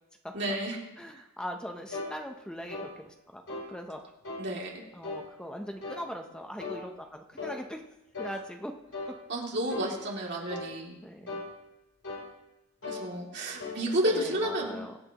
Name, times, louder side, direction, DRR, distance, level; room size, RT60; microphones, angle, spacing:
voice 1, 0.3-0.8 4.4-4.7 9.3-11.0 12.9-14.8, right 1 dB, 55° right, -2 dB, 2.7 m, -31 dB
voice 2, 1.0-4.0 4.9-7.8 8.2-8.7 10.3-10.5 11.0-11.4 14.1-14.9, equal, 5° left, 3 dB, 0.7 m, -41 dB
sound 1, 1.9-2.2 2.7-2.9 3.5-3.7 4.2-4.5 5.0-5.3 5.8-6.1 6.6-6.9 7.4-7.6 8.1-8.4 8.9-9.2 9.7-9.9 10.5-10.8 11.3-11.5 12.0-12.3 12.8-13.1 13.6-13.8, left 3 dB, 70° left, 3.4 m, -38 dB
23.5 x 8.5 x 3.0 m, 0.96 s
head